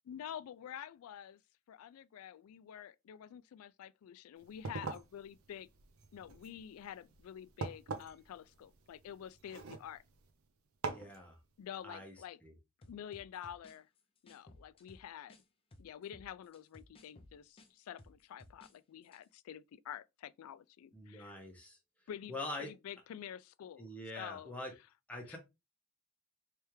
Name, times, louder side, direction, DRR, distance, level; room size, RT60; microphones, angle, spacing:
voice 1, 0.0-1.4 1.7-5.7 6.1-10.0 11.6-12.4 12.8-13.9 14.2-15.3 15.8-21.3 22.1-23.9 24.1-24.5 24.8-24.9 25.3-25.4, left 9 dB, 80° left, 0.3 m, -48 dB
sound 1, 4.4-10.3 10.8-11.2, right 4 dB, 75° right, 0.6 m, -44 dB
voice 2, 10.9-11.4 11.8-12.1 12.4-12.5 20.9-21.8 22.3-22.7 23.8-24.7 25.1-25.4, left 1 dB, 5° left, 1.0 m, -44 dB
sound 2, 12.8-15.4 15.7-18.8 19.0-19.2, left 1 dB, 25° left, 0.5 m, -59 dB
3.4 x 3.3 x 3.0 m
head